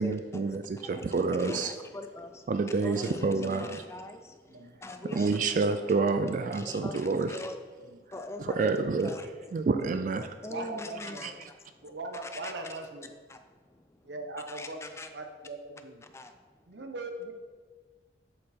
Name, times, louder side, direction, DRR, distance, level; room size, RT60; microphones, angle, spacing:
voice 1, 0.0-1.8 2.5-3.8 4.6-4.7 5.0-7.4 8.4-9.1 9.5-10.3 11.2-11.5, right 4 dB, 45° right, 9 dB, 0.3 m, -28 dB
voice 2, 1.4-2.5 2.8-5.3 5.9-6.1 6.5-8.7 9.0-9.3 10.4-12.0 12.2-12.7 13.3-13.9 14.5-15.1 16.0-16.7, left 2 dB, 15° left, 7 dB, 0.4 m, -43 dB
voice 3, 4.5-4.8 5.1-5.2 7.8-8.0 10.5-11.2 11.8-13.1 14.1-14.8 15.1-16.0 16.7-17.3, right 2 dB, 80° right, 5 dB, 0.8 m, -40 dB
7.5 x 4.5 x 4.3 m, 1.5 s
head